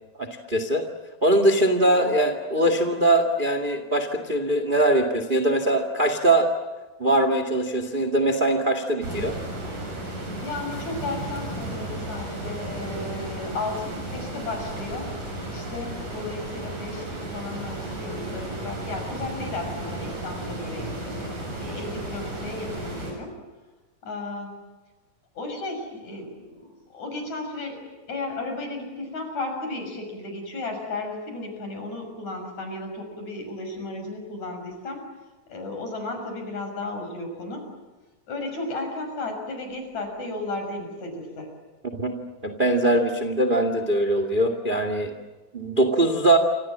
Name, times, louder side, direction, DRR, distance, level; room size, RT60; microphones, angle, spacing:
voice 1, 0.2-0.8 1.2-6.5 7.0-9.3 42.0-45.1 45.5-46.4, right 1 dB, 20° right, 7 dB, 1.6 m, -22 dB
sound 1, 9.0-23.1, right 1 dB, 55° right, 8.7 m, -34 dB
voice 2, 10.4-15.1 15.5-21.3 21.6-23.4 24.0-24.5 25.4-27.8 28.1-35.0 35.5-37.6 38.3-41.5, left 2 dB, 50° left, 4 dB, 7.5 m, -34 dB
28.5 x 26.5 x 7.5 m, 1.2 s
omnidirectional pair, 4.2 m